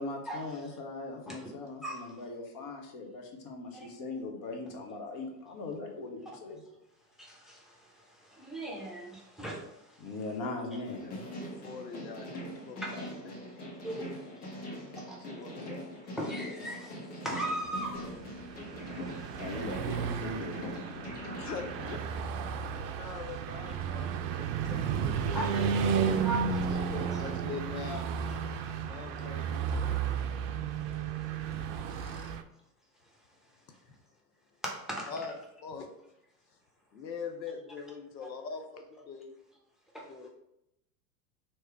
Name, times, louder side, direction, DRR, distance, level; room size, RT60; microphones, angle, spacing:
voice 1, 0.0-6.6 10.0-11.2 19.3-21.2, left 3 dB, 40° left, 3 dB, 1.1 m, -40 dB
voice 2, 1.8-2.2 3.7-3.9 6.3-6.4 7.2-10.1 12.8-13.1 13.8-14.2 15.0-15.2 16.2-16.9 17.2-18.2 18.8-19.4 25.3-27.2 30.1-30.2 34.6-35.1 39.9-40.0, right 2 dB, ahead, -2 dB, 0.9 m, -39 dB
voice 3, 10.8-13.4 14.7-14.8 15.2-15.9 16.2-16.5 21.3-22.0 22.8-26.3 26.7-28.0 28.8-30.0 31.8-32.3 33.8-34.0 35.1-35.3 35.6-35.9 36.9-39.3 40.0-40.3, left 5 dB, 85° left, 5 dB, 0.7 m, -43 dB
sound 1, 10.8-22.0, equal, 60° left, 1.5 m, -42 dB
Car passing by / Truck, 18.0-32.4, right 7 dB, 50° right, 0.5 m, -33 dB
3.2 x 3.0 x 4.6 m, 0.85 s
hypercardioid pair, 90°, 49 cm